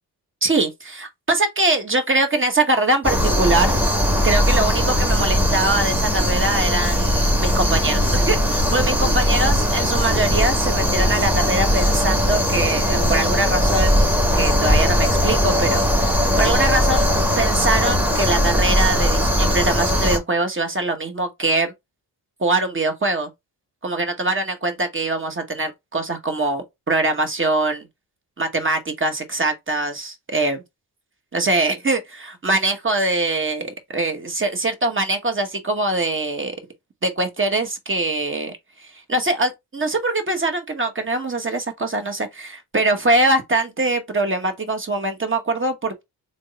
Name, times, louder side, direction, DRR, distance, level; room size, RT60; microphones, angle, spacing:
voice 1, 0.4-3.8 4.2-14.0 14.3-17.1 17.4-21.7 22.4-23.3 23.8-27.9 28.4-30.6 31.3-36.6 37.0-38.5 38.8-46.0, right 2 dB, 30° right, 1.1 m, -23 dB
sound 1, 3.0-20.2, equal, 5° right, 1.2 m, -19 dB
3.5 x 2.1 x 3.9 m
cardioid pair, 70°, 44 cm